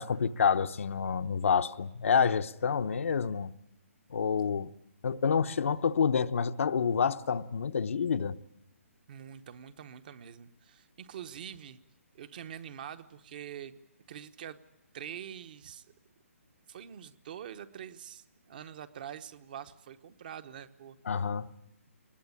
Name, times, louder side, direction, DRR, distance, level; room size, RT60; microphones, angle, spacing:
voice 1, 0.0-3.5 4.1-4.7 5.0-8.4 21.1-21.5, left 6 dB, 65° left, 0.9 m, -28 dB
voice 2, 9.1-11.8 12.1-13.7 14.1-14.6 14.9-15.9 16.7-21.2, right 9 dB, 35° right, 1.0 m, -45 dB
23.5 x 20.5 x 8.5 m
hypercardioid pair, 165°, 8 cm